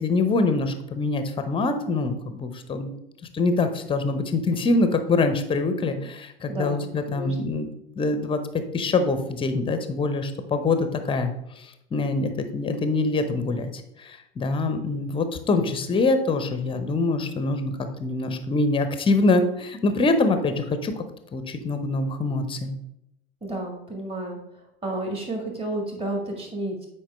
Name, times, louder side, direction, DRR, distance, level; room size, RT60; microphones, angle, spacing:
voice 1, 0.0-2.9 3.3-7.7 8.0-8.4 8.7-21.0 21.3-22.7, left 3 dB, 15° left, 9 dB, 0.7 m, -24 dB
voice 2, 6.5-7.4 23.4-24.4 24.8-26.9, right 1 dB, 20° right, 2 dB, 1.8 m, -31 dB
8.8 x 4.7 x 3.4 m, 0.83 s
figure-of-eight pair, 85°, 32 cm